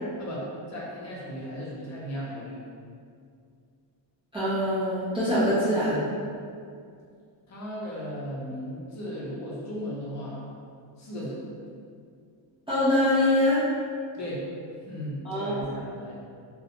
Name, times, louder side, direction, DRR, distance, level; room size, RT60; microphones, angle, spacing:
voice 1, 0.2-2.6 7.5-10.4 11.0-11.4 14.1-14.4 14.8-16.1, equal, 40° left, -6 dB, 0.6 m, -36 dB
voice 2, 4.3-5.9 12.7-13.7 15.2-15.5, left 1 dB, 15° right, -13 dB, 0.3 m, -23 dB
2.5 x 2.1 x 2.8 m, 2.3 s
cardioid pair, 165°, 45 cm